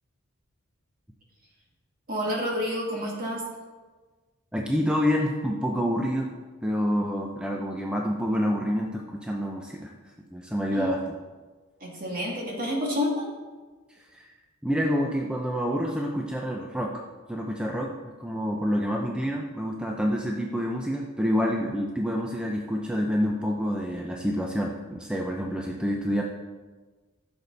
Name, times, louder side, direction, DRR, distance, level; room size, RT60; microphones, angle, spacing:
voice 1, 2.1-3.4 10.7-11.0 11.8-13.3, equal, 40° right, -3 dB, 2.8 m, -29 dB
voice 2, 4.5-6.3 6.6-9.9 10.3-11.0 14.1-14.3 14.6-17.0 17.3-26.2, equal, 5° right, 0 dB, 0.7 m, -27 dB
14.5 x 7.0 x 4.1 m, 1.3 s
head